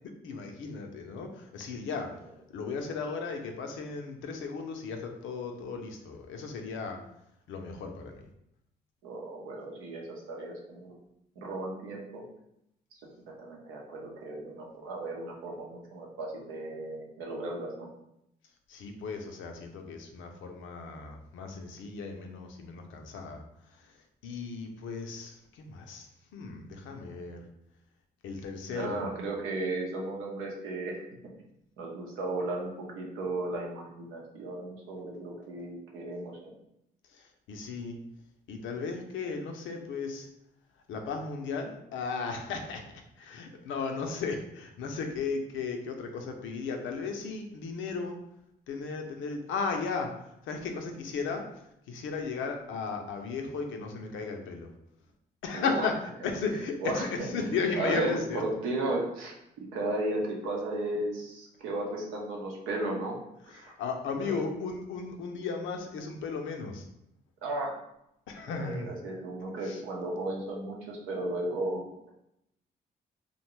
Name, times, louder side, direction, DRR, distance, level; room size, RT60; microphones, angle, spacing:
voice 1, 0.2-2.1 2.5-7.0 7.5-8.2 18.7-23.4 23.7-26.1 26.3-27.4 28.2-29.2 37.1-38.0 38.5-40.3 40.9-42.8 43.2-48.2 48.7-51.5 51.9-54.7 55.4-55.9 56.2-58.4 63.5-66.9 68.3-68.9 69.6-69.8, left 4 dB, 70° left, 4 dB, 0.5 m, -35 dB
voice 2, 9.0-11.0 11.4-12.2 13.3-17.9 28.7-31.0 31.8-36.5 55.5-55.9 56.8-63.2 63.5-63.8 64.1-64.4 67.4-67.7 68.5-72.1, right 2 dB, 85° right, -1 dB, 0.7 m, -35 dB
2.6 x 2.1 x 3.0 m, 0.80 s
supercardioid pair, 55°, 21 cm